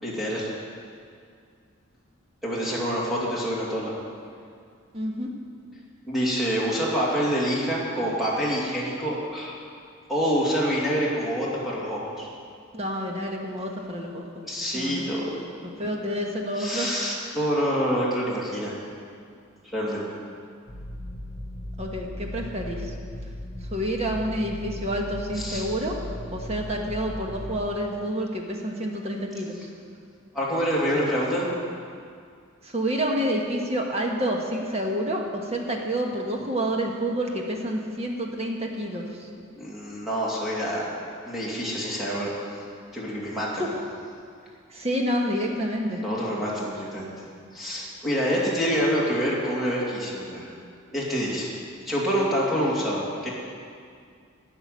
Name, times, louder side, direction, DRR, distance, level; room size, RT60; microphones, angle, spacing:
voice 1, 0.0-0.5 2.4-3.9 6.1-9.6 10.1-12.3 14.4-15.4 16.6-18.7 19.7-20.0 25.3-25.7 30.3-31.5 39.6-42.3 42.9-43.6 46.0-47.1 47.5-50.5 50.9-51.5 51.9-53.3, equal, ahead, -7 dB, 2.5 m, -26 dB
voice 2, 4.9-5.3 12.7-14.2 14.7-15.1 15.8-16.9 21.8-22.9 23.6-26.0 26.3-29.7 32.6-39.3 43.6-43.8 44.7-46.0, equal, 30° right, 1 dB, 1.4 m, -28 dB
sound 1, 20.7-27.6, equal, 25° left, 3.3 m, -37 dB
13.0 x 5.9 x 9.4 m, 2.3 s
head